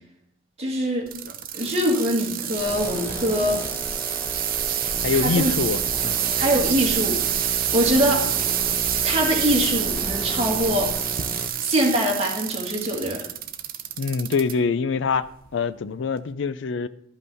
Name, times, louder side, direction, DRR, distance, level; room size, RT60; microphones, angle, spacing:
voice 1, 0.6-1.1 1.5-3.6 5.1-5.5 6.4-8.3 9.0-10.9 11.6-13.2, equal, 35° right, 1.9 m, -23 dB
sound 1, 1.1-14.5 15.1-15.5 16.2-16.3, right 11 dB, 50° right, 0.6 m, -27 dB
sound 2, 2.6-11.5, equal, 10° left, 0.9 m, -33 dB
voice 2, 5.0-6.2 14.0-16.9, left 5 dB, 65° left, 0.4 m, -25 dB
12.0 x 5.5 x 4.1 m
head